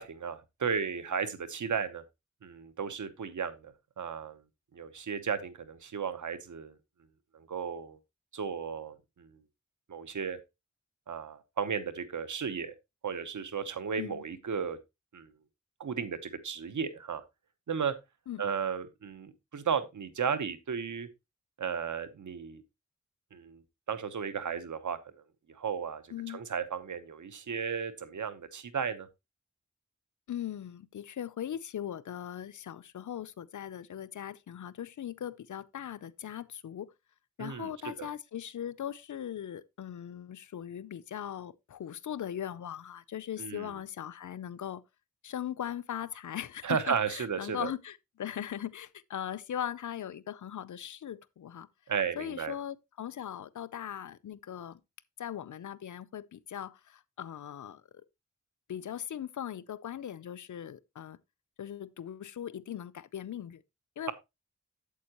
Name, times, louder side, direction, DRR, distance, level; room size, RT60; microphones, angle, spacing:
voice 1, 0.0-2.0 2.4-4.4 4.7-6.7 7.3-8.0 8.3-9.3 9.9-10.4 11.1-12.7 13.0-14.8 15.1-15.3 15.8-17.2 17.7-17.9 18.4-21.1 21.6-22.6 23.3-23.6 23.9-25.0 25.5-29.1 37.4-38.1 43.4-43.8 46.6-47.7 51.9-52.5, right 6 dB, 85° right, 1.0 m, -34 dB
voice 2, 26.1-26.4 30.3-36.9 37.4-44.8 45.2-51.7 52.2-54.8 55.2-57.8 58.7-61.2 61.6-63.6 64.0-64.1, left 10 dB, 85° left, 0.5 m, -39 dB
8.4 x 7.7 x 2.9 m
wide cardioid pair, 60°, 29 cm